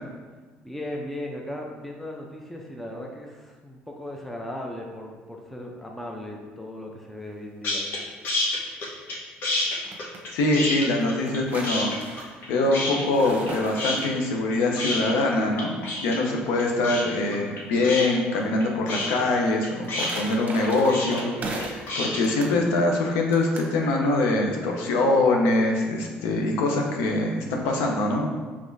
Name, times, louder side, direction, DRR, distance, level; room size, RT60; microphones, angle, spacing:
voice 1, 0.6-7.9, left 1 dB, 5° left, 0 dB, 0.5 m, -37 dB
sound 1, 7.6-8.0 8.2-9.2 9.4-11.4 11.6-12.5 12.7-13.5 13.8-22.2, left 2 dB, 60° left, 1.1 m, -29 dB
sound 2, 9.6-10.2 11.0-14.3 19.5-21.9 22.2-22.6 23.3-23.7, right 2 dB, 40° right, 0.9 m, -37 dB
voice 2, 10.3-11.9 12.2-15.7 16.0-28.3, left 2 dB, 80° left, 1 dB, 0.7 m, -23 dB
4.8 x 3.5 x 2.6 m, 1.4 s
supercardioid pair, 80°, 4 cm